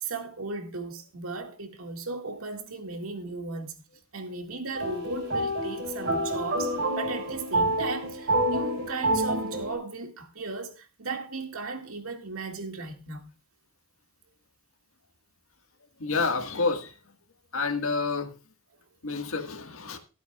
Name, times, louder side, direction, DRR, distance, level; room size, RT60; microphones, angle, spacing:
voice 1, 0.0-3.8 4.1-13.3, right 3 dB, 80° right, 2.1 m, -36 dB
sound 1, 4.7-9.7, right 1 dB, 50° right, 4.3 m, -28 dB
voice 2, 16.0-16.9 17.5-18.3 19.0-20.0, left 4 dB, 75° left, 1.7 m, -28 dB
23.5 x 8.4 x 2.4 m
head